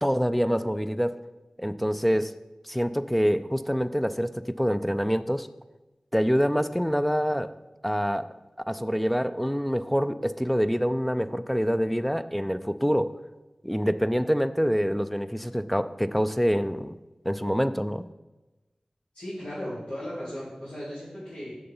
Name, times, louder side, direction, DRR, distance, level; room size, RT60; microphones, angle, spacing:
voice 1, 0.0-1.2 1.6-2.3 2.6-5.5 6.1-7.5 7.8-8.3 8.7-13.1 13.6-17.0 17.2-18.0, equal, 5° left, 12 dB, 0.5 m, -26 dB
voice 2, 19.1-21.6, equal, 70° left, -12 dB, 3.7 m, -36 dB
7.8 x 6.8 x 5.5 m, 1.1 s
wide cardioid pair, 45°, 2 cm